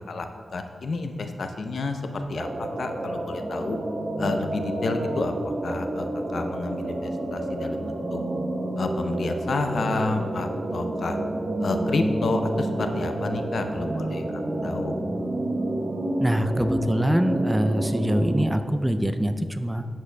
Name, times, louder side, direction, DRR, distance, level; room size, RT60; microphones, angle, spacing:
voice 1, 0.5-3.8 4.2-8.2 8.8-11.2 11.6-15.0, left 3 dB, 70° left, 6 dB, 0.6 m, -30 dB
sound 1, 2.4-18.5, right 1 dB, 45° right, 0.7 m, -29 dB
voice 2, 16.2-19.9, equal, 10° right, 9 dB, 0.3 m, -24 dB
10.5 x 7.4 x 2.2 m, 2.2 s
wide cardioid pair, 100°, 0 cm